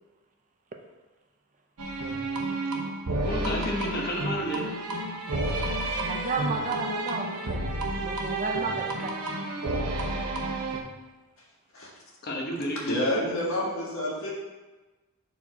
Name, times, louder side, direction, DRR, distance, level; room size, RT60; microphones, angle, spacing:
sound 1, 1.8-10.8, right 2 dB, 85° right, 0.9 m, -31 dB
voice 1, 3.2-4.7 12.2-13.0, equal, 45° left, -1 dB, 1.2 m, -31 dB
voice 2, 6.1-9.3, right 3 dB, 35° right, 3 dB, 0.5 m, -33 dB
voice 3, 12.9-14.3, left 1 dB, 65° left, -4 dB, 1.7 m, -28 dB
4.8 x 4.2 x 5.9 m, 1.2 s
head